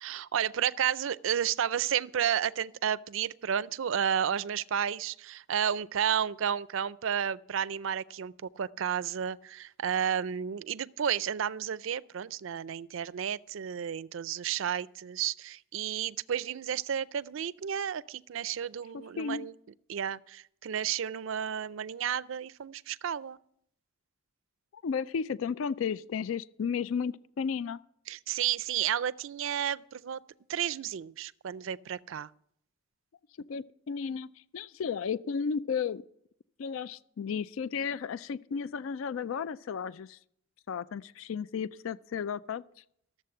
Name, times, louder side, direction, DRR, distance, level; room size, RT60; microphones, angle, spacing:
voice 1, 0.0-19.5 19.9-23.4 28.1-30.2 30.5-32.3, right 9 dB, 70° right, 0.4 m, -32 dB
voice 2, 18.9-19.5 24.8-27.8 33.4-36.0 36.6-40.2 40.7-42.6, left 6 dB, 75° left, 0.4 m, -33 dB
13.0 x 7.4 x 7.7 m
head